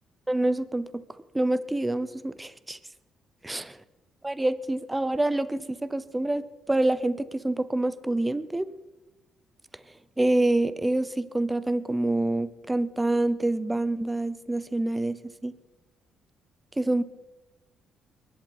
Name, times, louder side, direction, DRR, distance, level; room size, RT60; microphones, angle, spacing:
voice 1, 0.3-1.0 1.3-2.8 3.5-3.6 4.2-8.7 10.2-15.5 16.8-17.0, right 2 dB, 15° right, 15 dB, 0.7 m, -26 dB
22.0 x 11.0 x 4.5 m, 1.1 s
cardioid pair, 90°, 0 cm